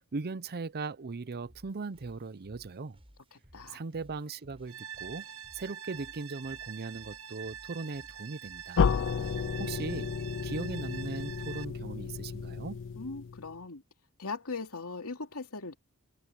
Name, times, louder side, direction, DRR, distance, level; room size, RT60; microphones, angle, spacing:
voice 1, 0.0-3.0 3.7-5.3 5.5-8.8 9.6-10.1 10.4-12.8, right 4 dB, 45° right, 0.6 m, -38 dB
sound 1, 1.4-9.4, equal, 25° right, 6.3 m, -60 dB
sound 2, 4.7-11.6, right 9 dB, 75° right, 6.9 m, -45 dB
sound 3, 8.8-13.6, left 6 dB, 60° left, 0.5 m, -32 dB
voice 2, 13.0-13.8 14.2-15.7, left 3 dB, 75° left, 2.8 m, -39 dB
head